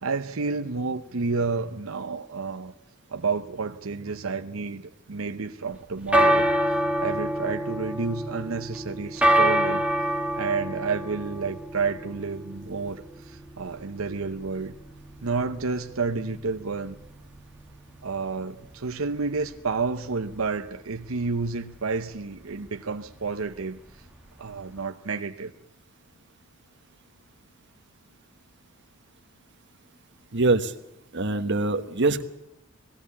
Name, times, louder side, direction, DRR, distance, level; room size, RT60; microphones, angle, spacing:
voice 1, 0.0-2.7 3.1-4.8 5.1-6.5 7.0-9.9 10.3-14.7 15.2-17.0 18.0-23.8 24.4-25.5, right 4 dB, 90° right, 7 dB, 0.9 m, -30 dB
sound 1, 5.7-24.8, equal, 5° right, 1.3 m, -29 dB
voice 2, 30.3-30.7 31.1-32.2, right 3 dB, 60° right, 8 dB, 1.3 m, -23 dB
20.0 x 16.0 x 8.5 m, 0.89 s
head